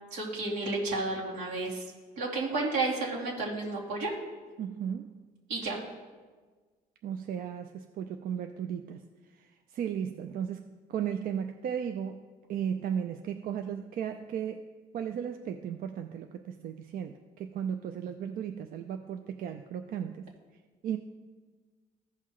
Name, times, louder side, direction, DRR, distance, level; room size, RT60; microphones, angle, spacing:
voice 1, 0.1-1.8 2.2-4.1 5.5-5.8, right 3 dB, 85° right, -5 dB, 2.7 m, -31 dB
voice 2, 4.6-5.2 7.0-9.0 9.3-12.2 12.5-20.3 20.8-21.0, right 8 dB, 60° right, 7 dB, 0.5 m, -35 dB
15.0 x 5.6 x 3.1 m, 1.4 s
cardioid pair, 110°, 17 cm